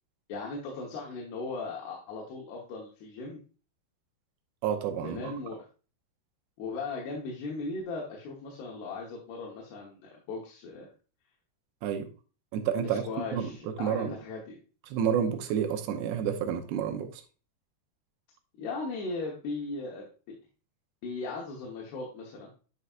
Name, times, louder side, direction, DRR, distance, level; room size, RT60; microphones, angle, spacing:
voice 1, 0.3-3.4 5.0-5.6 6.6-10.9 12.8-14.6 18.6-20.1 21.0-22.5, left 3 dB, 70° left, 3.0 m, -37 dB
voice 2, 4.6-5.3 11.8-12.1 12.5-13.0 13.3-14.2 14.9-17.2, right 8 dB, 75° right, 2.8 m, -30 dB
9.4 x 5.7 x 2.4 m
omnidirectional pair, 5.1 m